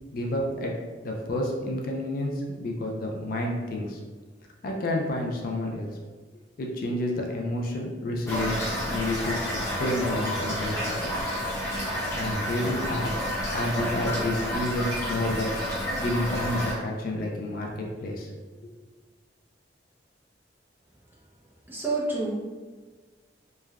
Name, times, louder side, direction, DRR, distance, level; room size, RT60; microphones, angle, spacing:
voice 1, 0.1-0.7 1.0-4.0 4.6-5.9 6.6-11.3 12.1-13.2 13.5-15.5 16.0-17.7 18.0-18.3, left 1 dB, 50° left, 0 dB, 0.4 m, -30 dB
Toilet flush / Fill (with liquid), 8.3-16.7, equal, 15° left, 0.8 m, -30 dB
voice 2, 21.7-22.4, right 2 dB, 10° right, -5 dB, 0.5 m, -28 dB
3.2 x 2.1 x 2.3 m, 1.4 s
head